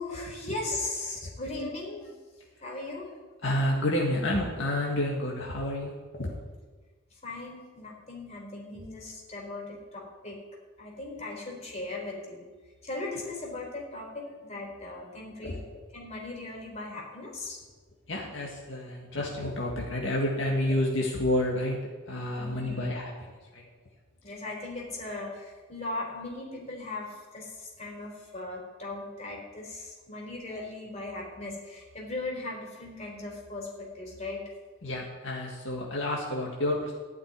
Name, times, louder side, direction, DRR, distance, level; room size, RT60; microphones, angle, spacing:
voice 1, 0.0-2.1 2.6-3.1 7.2-10.4 10.8-12.4 12.8-15.6 15.9-17.6 22.3-22.9 24.2-34.4, left 2 dB, 35° left, -2 dB, 4.0 m, -38 dB
voice 2, 3.4-5.9 6.2-6.3 15.4-15.6 18.1-21.8 22.0-23.6 34.8-36.9, left 1 dB, 70° left, -2 dB, 1.9 m, -29 dB
15.0 x 6.0 x 9.8 m, 1.4 s
head